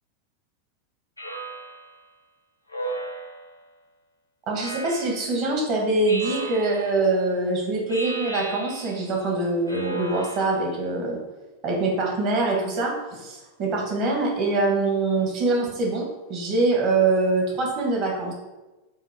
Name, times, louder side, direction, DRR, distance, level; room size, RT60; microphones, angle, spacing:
Speech synthesizer, 1.2-2.0 2.7-3.6 4.5-5.4 6.1-7.1 7.9-9.1 9.7-10.7, right 2 dB, 85° left, 1.0 m, -35 dB
voice 1, 4.5-11.2 11.6-18.3, right 3 dB, 40° right, 0 dB, 1.6 m, -24 dB
7.4 x 2.9 x 4.4 m, 1.1 s
figure-of-eight pair, 90°, 0 cm